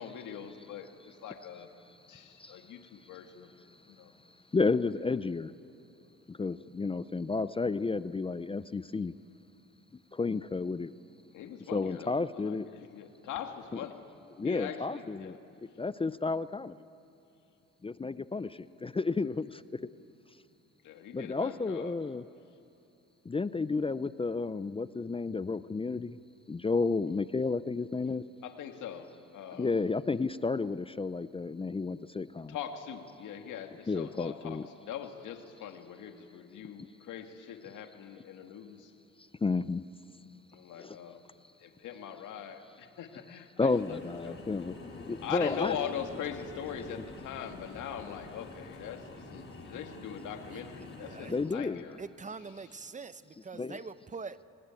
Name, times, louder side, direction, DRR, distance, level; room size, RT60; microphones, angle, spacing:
voice 1, 0.0-1.7 2.1-4.1 11.3-14.1 14.4-15.4 20.8-22.0 28.4-29.8 32.5-38.9 40.5-41.2 41.6-44.4 45.2-52.0, left 8 dB, 80° left, 5 dB, 2.1 m, -42 dB
voice 2, 4.5-5.5 6.3-9.1 10.1-10.9 11.7-12.7 13.7-13.8 14.4-15.4 15.8-16.8 17.8-19.6 21.1-22.3 23.3-26.1 26.5-28.2 29.6-32.6 33.9-34.6 39.4-39.8 40.8-41.0 43.6-44.7 45.1-45.8 51.3-51.8 53.6-53.8, left 4 dB, 20° left, 15 dB, 0.5 m, -31 dB
sound 1, 43.7-51.4, left 3 dB, 40° left, 5.4 m, -47 dB
voice 3, 50.4-51.4 52.0-54.4, right 4 dB, 25° right, 14 dB, 0.9 m, -44 dB
27.5 x 18.5 x 9.0 m, 2.7 s
cardioid pair, 90°, 30 cm